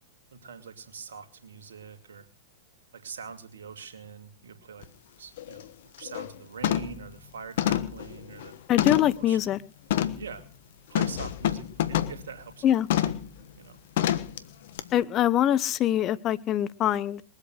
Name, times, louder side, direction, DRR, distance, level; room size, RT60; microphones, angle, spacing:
voice 1, 0.3-2.3 2.9-4.9 5.2-8.5 9.2-9.4 10.1-10.5 10.9-13.1 13.5-13.8, right 6 dB, 75° right, 7 dB, 2.5 m, -43 dB
sound 1, 4.8-4.9 5.4-5.6 6.0-6.3 6.6-7.0 7.6-9.2 9.9-10.3 10.9-12.2 12.9-13.3 14.0-14.4 14.8-14.9, left 11 dB, 65° left, 1.2 m, -27 dB
voice 2, 8.7-9.6 12.6-12.9 14.9-17.2, left 11 dB, 35° left, 18 dB, 0.8 m, -23 dB
21.5 x 8.2 x 6.5 m, 0.40 s
hypercardioid pair, 105°, 0 cm